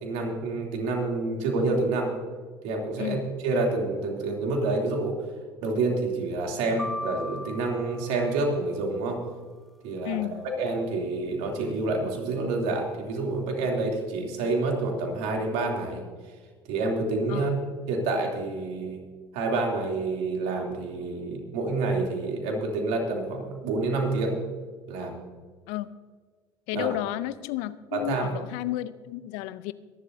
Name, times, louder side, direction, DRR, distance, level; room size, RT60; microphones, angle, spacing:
voice 1, 0.0-2.1 2.6-5.2 5.6-9.2 9.8-10.2 10.6-16.0 16.7-19.0 19.3-24.4 24.9-25.1 26.7-26.9 27.9-28.3, right 3 dB, 70° right, 1 dB, 2.9 m, -28 dB
sound 1, 6.8-8.9, left 1 dB, ahead, 0.7 m, -38 dB
voice 2, 10.0-10.4 17.3-17.5 25.7-25.9 26.7-29.7, left 16 dB, 70° left, 16 dB, 0.6 m, -32 dB
23.0 x 11.5 x 2.7 m, 1.5 s
hypercardioid pair, 65°, 12 cm